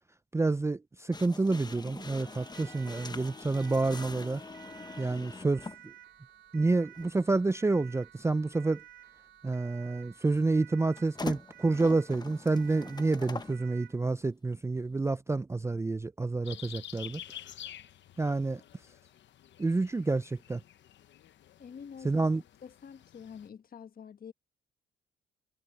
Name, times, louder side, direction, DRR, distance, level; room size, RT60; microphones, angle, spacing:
voice 1, 0.3-4.4 5.0-5.9 6.5-8.8 9.4-17.2 18.2-18.6 19.6-20.6 22.0-22.4, right 3 dB, 15° right, 0.4 m, -29 dB
sound 1, 1.1-5.8 6.9-7.1 11.0-13.6, left 3 dB, 20° left, 1.2 m, -43 dB
Siren, 2.0-14.0, right 13 dB, 70° right, 3.3 m, -54 dB
sound 2, 16.4-23.5, left 11 dB, 65° left, 1.0 m, -49 dB
voice 2, 21.6-22.3 22.6-24.3, left 7 dB, 45° left, 1.5 m, -47 dB
cardioid pair, 90°, 20 cm